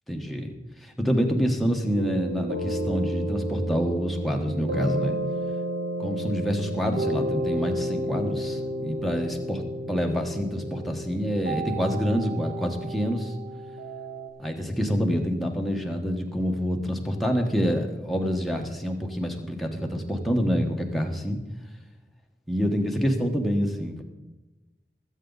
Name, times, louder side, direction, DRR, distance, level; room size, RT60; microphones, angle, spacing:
voice 1, 0.1-0.5 0.8-5.2 6.0-13.3 14.4-21.4 22.5-24.0, equal, ahead, 1 dB, 1.2 m, -27 dB
sound 1, 1.9-14.3, right 1 dB, 90° right, 1.7 m, -31 dB
20.5 x 8.2 x 4.0 m, 1.1 s
head